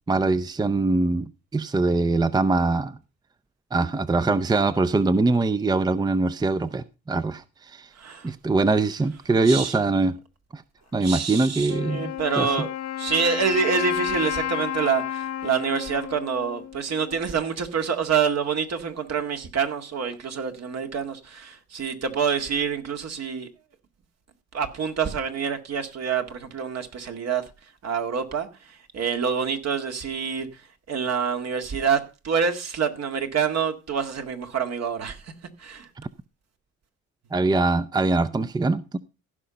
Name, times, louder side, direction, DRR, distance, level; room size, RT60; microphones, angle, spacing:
voice 1, 0.1-3.0 3.7-7.9 8.2-10.2 10.5-10.6 10.9-12.5 37.3-39.0, right 3 dB, 15° right, 0.6 m, -23 dB
voice 2, 8.0-8.3 9.4-9.8 11.0-12.7 13.0-23.5 24.5-27.4 27.8-30.6 30.9-35.3 35.6-35.9, right 6 dB, 60° right, 2.0 m, -27 dB
Wind instrument woodwind instrument, 11.7-17.4, left 11 dB, 65° left, 1.2 m, -32 dB
15.5 x 5.8 x 5.0 m
cardioid pair, 90°, 30 cm